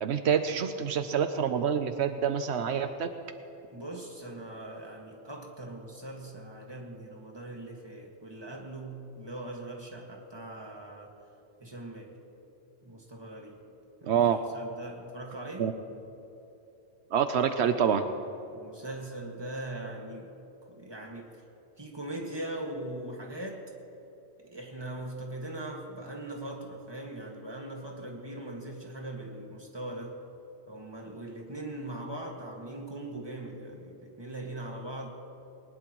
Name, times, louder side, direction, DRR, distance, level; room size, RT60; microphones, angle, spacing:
voice 1, 0.0-3.1 14.0-14.4 15.6-15.7 17.1-18.0, right 7 dB, 80° right, 8 dB, 0.9 m, -26 dB
voice 2, 3.7-11.1 11.6-12.2 12.8-13.7 14.0-15.7 18.5-20.3 20.6-21.4 21.8-23.7 24.4-30.2 30.7-35.1, right 1 dB, 25° right, 0 dB, 1.8 m, -40 dB
20.5 x 19.5 x 3.0 m, 2.9 s
omnidirectional pair, 1.1 m